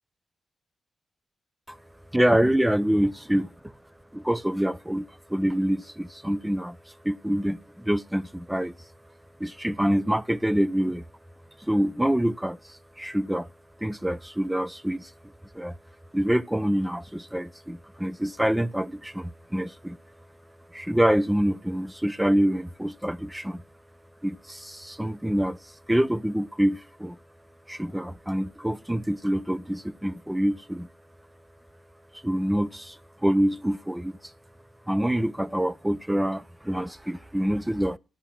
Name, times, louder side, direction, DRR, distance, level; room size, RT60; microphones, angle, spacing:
voice 1, 2.1-3.7 4.1-8.7 9.4-11.0 11.6-13.5 13.8-15.1 15.5-15.8 16.1-20.0 20.7-23.6 24.2-27.2 27.7-30.9 32.2-34.3 34.9-38.0, equal, 5° right, 0.5 m, -26 dB
12.5 x 5.8 x 7.3 m
cardioid pair, 90°, 0 cm